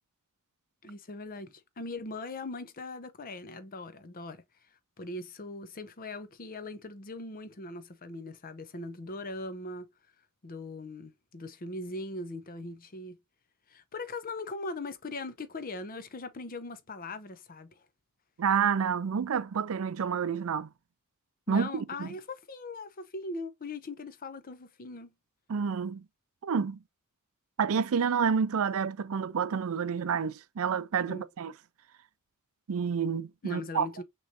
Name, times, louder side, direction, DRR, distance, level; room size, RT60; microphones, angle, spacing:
voice 1, 0.8-4.4 5.0-9.9 10.4-13.2 13.7-17.8 21.5-25.1 31.1-31.2 33.4-34.0, left 2 dB, 40° left, 0.7 m, -40 dB
voice 2, 18.4-20.7 21.5-22.1 25.5-26.0 26.4-26.8 27.6-31.5 32.7-33.9, right 6 dB, 65° right, 0.4 m, -29 dB
6.2 x 3.1 x 2.6 m
head